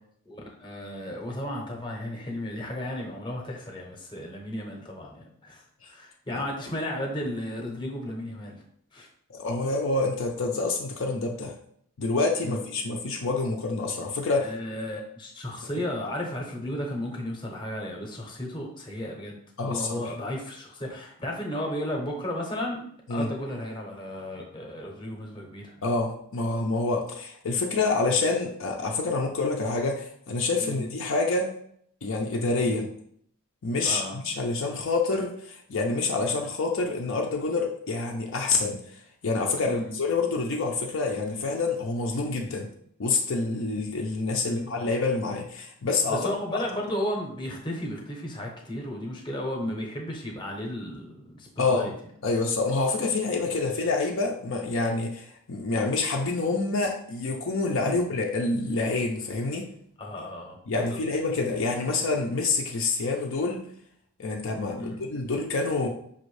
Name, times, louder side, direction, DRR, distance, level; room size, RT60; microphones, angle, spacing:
voice 1, 0.2-8.6 8.9-9.1 12.4-12.6 14.4-22.8 23.1-25.8 30.6-30.8 33.8-34.2 39.6-39.9 42.5-42.6 44.4-44.7 46.1-51.9 57.8-58.0 60.0-61.0 64.7-65.0, left 1 dB, 20° left, 0 dB, 0.8 m, -34 dB
voice 2, 9.3-11.5 12.0-14.5 19.6-20.0 23.1-23.3 25.8-31.5 32.0-32.9 33.6-38.8 39.2-42.7 43.0-46.3 51.6-51.9 52.2-59.7 60.7-63.6 64.2-65.9, left 3 dB, 60° left, 1 dB, 0.5 m, -27 dB
5.5 x 2.6 x 3.2 m, 0.67 s
head